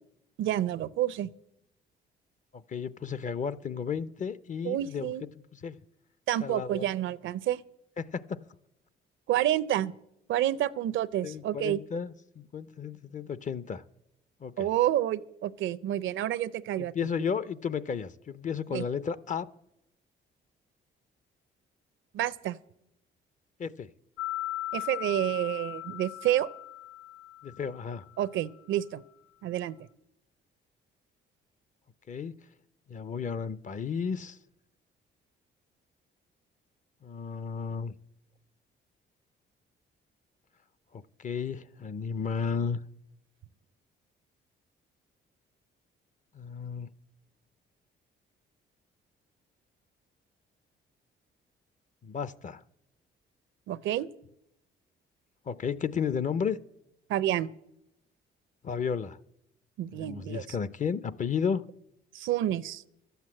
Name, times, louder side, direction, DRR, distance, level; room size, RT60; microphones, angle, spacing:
voice 1, 0.4-1.3 4.6-5.3 6.3-7.6 9.3-9.9 10.3-11.8 14.6-16.9 18.7-18.9 22.1-22.6 24.7-26.5 28.2-29.0 29.4-29.8 53.7-54.1 57.1-57.5 59.8-60.4 62.1-62.8, right 12 dB, 75° right, 0.5 m, -29 dB
voice 2, 2.5-5.1 5.5-5.8 6.4-6.9 8.0-8.4 11.2-13.8 14.4-14.7 16.8-19.5 23.6-23.9 27.4-28.1 32.1-32.3 32.9-34.4 37.0-37.9 40.9-42.8 46.3-46.9 52.0-52.6 55.5-56.6 58.6-59.2 59.9-61.6, left 6 dB, 40° left, 0.6 m, -33 dB
sound 1, 24.2-28.0, left 16 dB, 70° left, 1.6 m, -38 dB
12.0 x 8.1 x 7.6 m
cardioid pair, 90°, 20 cm